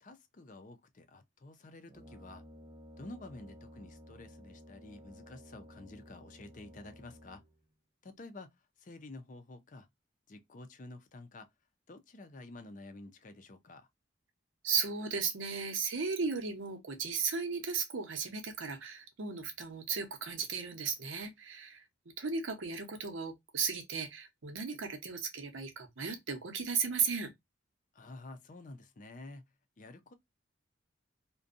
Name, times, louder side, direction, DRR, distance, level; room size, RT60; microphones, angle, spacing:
voice 1, 0.0-2.5 3.0-7.4 8.0-9.9 10.3-11.5 11.9-13.9 27.9-29.4 29.8-30.1, left 2 dB, 40° left, 0.5 m, -50 dB
Brass instrument, 1.9-7.6, equal, 20° right, 0.5 m, -54 dB
voice 2, 14.6-21.8 22.2-27.3, right 5 dB, 90° right, 0.8 m, -35 dB
2.6 x 2.2 x 2.4 m
head